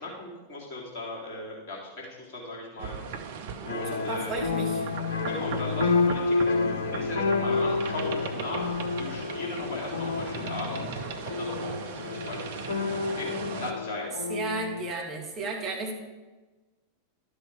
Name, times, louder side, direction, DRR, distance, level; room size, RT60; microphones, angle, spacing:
voice 1, 0.0-3.3 3.6-4.3 5.2-14.1, left 1 dB, 45° left, -3 dB, 3.6 m, -38 dB
sound 1, 2.8-13.7, right 6 dB, 55° right, 0.8 m, -38 dB
sound 2, 3.7-14.9, left 4 dB, 70° left, 0.5 m, -29 dB
voice 2, 3.9-4.9 14.3-15.9, right 3 dB, 30° right, -1 dB, 2.2 m, -33 dB
12.0 x 6.3 x 5.1 m, 1.2 s
figure-of-eight pair, 90°, 0 cm